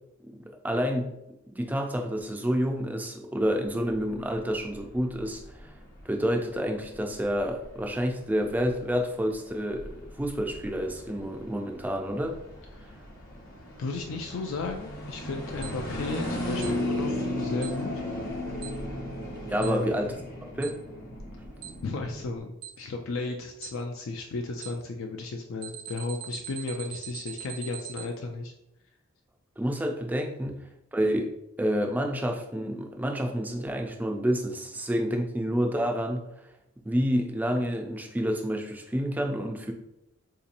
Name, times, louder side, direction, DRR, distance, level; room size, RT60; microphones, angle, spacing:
voice 1, 0.2-1.1 1.5-5.7 6.1-12.4 19.4-20.2 20.5-20.8 29.6-30.6 30.9-36.2 36.8-39.7, equal, 10° right, 3 dB, 0.3 m, -29 dB
sound 1, 3.6-22.4, left 1 dB, 45° left, 0.9 m, -37 dB
voice 2, 13.8-17.9 19.6-19.9 21.8-28.5, left 3 dB, 70° left, 3 dB, 0.3 m, -34 dB
Alarm, 15.6-15.7 16.6-16.7 17.6-17.7 18.6-18.7 19.6-19.7 20.6-20.7 21.6-21.7 22.6-22.7 23.6-23.7 24.6-24.7 25.6-28.1, right 11 dB, 85° right, 0.4 m, -40 dB
3.8 x 2.8 x 2.5 m, 0.85 s
head